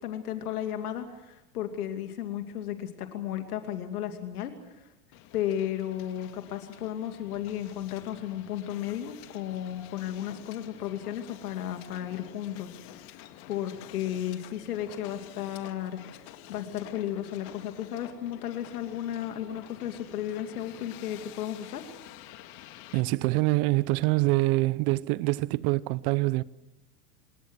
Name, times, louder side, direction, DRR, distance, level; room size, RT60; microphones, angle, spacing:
voice 1, 0.0-4.5 4.8-4.9 5.3-12.7 13.5-21.8, left 11 dB, 85° left, 2.6 m, -34 dB
Hiss, 5.1-23.0, left 13 dB, 55° left, 2.0 m, -49 dB
voice 2, 22.9-26.4, right 21 dB, 50° right, 0.8 m, -25 dB
28.0 x 20.5 x 6.3 m
hypercardioid pair, 110°, 44 cm